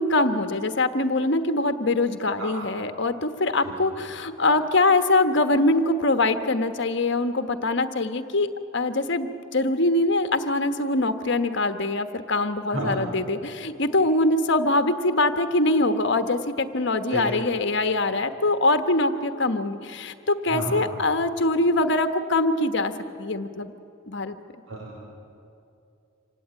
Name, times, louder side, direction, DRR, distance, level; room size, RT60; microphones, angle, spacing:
voice 1, 0.0-8.5 8.7-22.9 23.2-23.7 24.1-24.3, left 2 dB, 60° left, 8 dB, 1.2 m, -23 dB
voice 2, 24.7-25.1, right 1 dB, 80° right, -4 dB, 4.4 m, -30 dB
26.0 x 17.5 x 8.9 m, 2.6 s
head